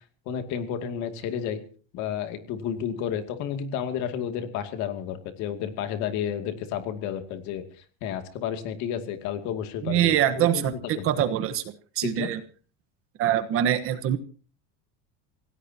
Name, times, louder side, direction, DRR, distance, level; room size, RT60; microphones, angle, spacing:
voice 1, 0.3-1.6 1.9-7.6 8.0-11.2 12.0-12.3, left 8 dB, 50° left, 7 dB, 2.5 m, -31 dB
voice 2, 9.8-11.6 12.0-12.4 13.2-14.2, right 11 dB, 35° right, 11 dB, 1.3 m, -24 dB
26.5 x 17.0 x 2.9 m, 0.39 s
cardioid pair, 170°, 36 cm